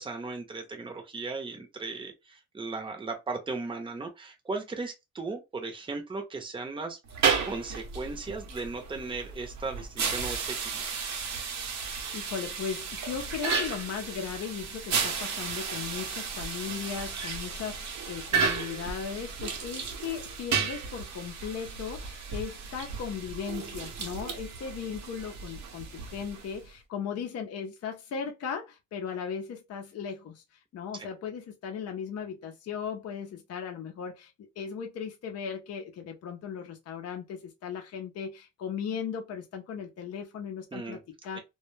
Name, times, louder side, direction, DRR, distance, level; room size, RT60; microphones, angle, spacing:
voice 1, 0.0-7.0 7.4-10.8 40.7-41.0, right 3 dB, 15° right, 0.7 m, -37 dB
sound 1, 7.1-26.7, right 5 dB, 65° right, 0.8 m, -33 dB
voice 2, 12.1-30.4 30.7-41.4, left 7 dB, 55° left, 0.6 m, -37 dB
2.2 x 2.0 x 3.1 m
cardioid pair, 90°, 30 cm